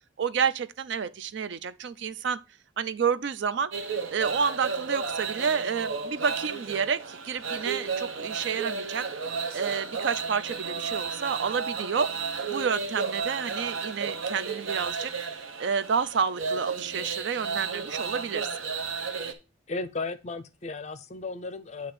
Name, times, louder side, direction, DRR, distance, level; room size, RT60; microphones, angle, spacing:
voice 1, 0.2-2.4 2.8-3.7 4.1-9.1 9.5-12.1 12.5-15.1 15.6-18.5, right 6 dB, 65° right, 0.4 m, -29 dB
sound 1, 3.7-19.3, right 5 dB, 90° right, 0.9 m, -33 dB
voice 2, 19.7-21.9, left 3 dB, 35° left, 0.5 m, -35 dB
8.5 x 2.8 x 5.9 m
head